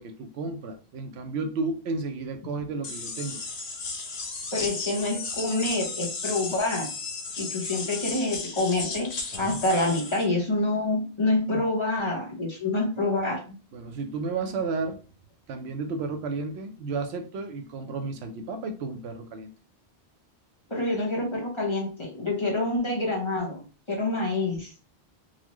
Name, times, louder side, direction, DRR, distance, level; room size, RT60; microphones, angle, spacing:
voice 1, 0.0-3.4 11.5-11.6 13.7-15.0 15.5-19.5, right 3 dB, 75° right, 6 dB, 0.8 m, -32 dB
sound 1, 2.8-10.2, left 4 dB, 75° left, 1.0 m, -34 dB
voice 2, 4.5-6.9 7.4-9.1 9.4-13.4 20.7-24.7, left 2 dB, 30° left, -2 dB, 0.8 m, -27 dB
4.0 x 2.1 x 2.9 m, 0.36 s
omnidirectional pair, 1.1 m